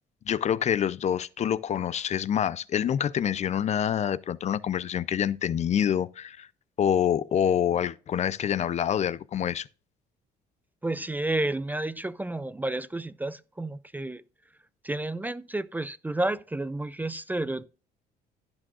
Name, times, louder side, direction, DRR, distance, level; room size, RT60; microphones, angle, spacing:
voice 1, 0.3-6.5 6.8-9.7, left 9 dB, 40° left, 0.5 m, -26 dB
voice 2, 10.8-14.2 14.8-17.7, right 2 dB, 10° right, 0.4 m, -31 dB
15.5 x 6.2 x 2.4 m
cardioid pair, 110°, 17 cm